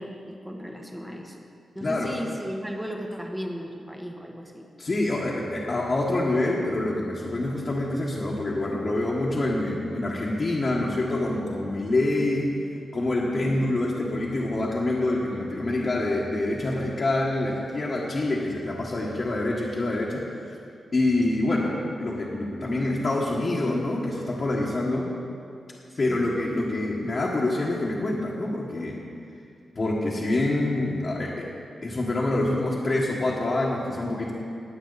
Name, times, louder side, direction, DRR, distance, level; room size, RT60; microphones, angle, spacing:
voice 1, 0.0-1.4 1.7-4.6 13.3-13.7 21.2-21.3 25.9-26.3, equal, 5° right, 2 dB, 1.1 m, -36 dB
voice 2, 1.8-2.2 4.8-12.5 12.9-20.2 20.9-25.1 26.0-29.0 29.7-31.5 31.8-34.3, left 2 dB, 35° left, -5 dB, 1.5 m, -26 dB
19.5 x 8.2 x 4.1 m, 2.5 s
wide cardioid pair, 145°, 0 cm